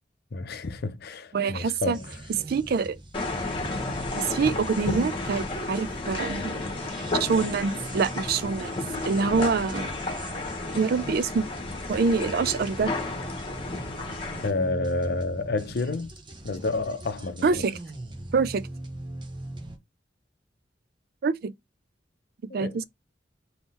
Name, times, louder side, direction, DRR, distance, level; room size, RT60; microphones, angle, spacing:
voice 1, 0.3-2.2 14.4-16.1 16.4-17.6 22.5-22.8, left 3 dB, 60° left, 0.6 m, -30 dB
voice 2, 1.3-2.0 2.3-3.3 4.1-6.5 6.9-8.7 9.0-10.0 10.7-11.5 11.9-12.9 17.4-17.8 18.3-18.7 21.2-21.5 22.4-22.8, right 5 dB, 55° right, 0.4 m, -26 dB
sound 1, 1.9-19.8, right 2 dB, 25° right, 0.8 m, -42 dB
sound 2, 3.1-14.5, left 2 dB, 30° left, 1.2 m, -32 dB
3.7 x 2.8 x 4.1 m
head